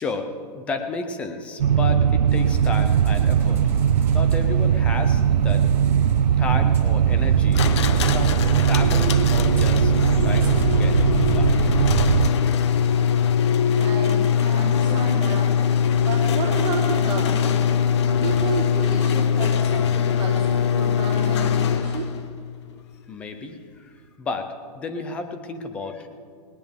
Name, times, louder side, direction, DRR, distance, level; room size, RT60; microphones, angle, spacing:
voice 1, 0.0-3.7 4.1-5.6 6.4-7.6 8.0-11.0 11.2-11.6 23.1-26.1, left 3 dB, 5° left, 7 dB, 0.4 m, -32 dB
sound 1, 1.6-12.3, right 8 dB, 90° right, 0.7 m, -19 dB
sound 2, 2.3-17.9, right 2 dB, 10° right, 1.5 m, -46 dB
sound 3, 7.5-22.2, left 8 dB, 40° left, 0.7 m, -22 dB
voice 2, 13.7-15.5 16.0-17.7 18.0-22.1, right 5 dB, 55° right, -5 dB, 3.3 m, -31 dB
20.0 x 19.0 x 3.5 m, 2.2 s
hypercardioid pair, 175°, 21 cm